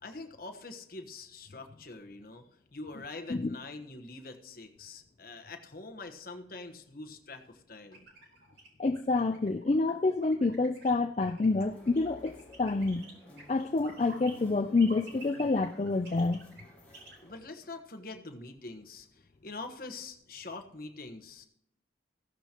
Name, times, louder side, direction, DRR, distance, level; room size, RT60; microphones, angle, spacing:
voice 1, 0.0-8.0 17.2-21.5, left 3 dB, 50° left, 5 dB, 1.2 m, -45 dB
sound 1, 7.9-14.3 14.6-17.1, right 3 dB, 60° right, 4.0 m, -51 dB
voice 2, 8.8-13.0 13.5-16.4, left 3 dB, 35° left, 7 dB, 0.4 m, -28 dB
sound 2, 11.4-17.4, left 1 dB, 10° left, 6.0 m, -55 dB
15.0 x 14.0 x 2.9 m, 0.74 s
head